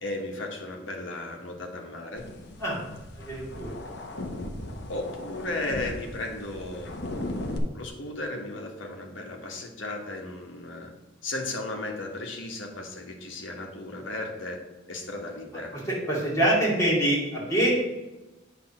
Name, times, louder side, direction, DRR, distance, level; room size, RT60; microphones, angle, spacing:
voice 1, 0.0-2.3 4.9-6.9 7.6-10.9 11.2-14.6 14.9-15.8, left 2 dB, 75° left, 1 dB, 1.3 m, -35 dB
sound 1, 2.2-7.6, left 1 dB, 55° left, 0.9 m, -37 dB
voice 2, 3.3-3.7 16.1-17.7, right 1 dB, 15° left, -6 dB, 2.4 m, -24 dB
8.3 x 3.5 x 6.0 m, 1.1 s
head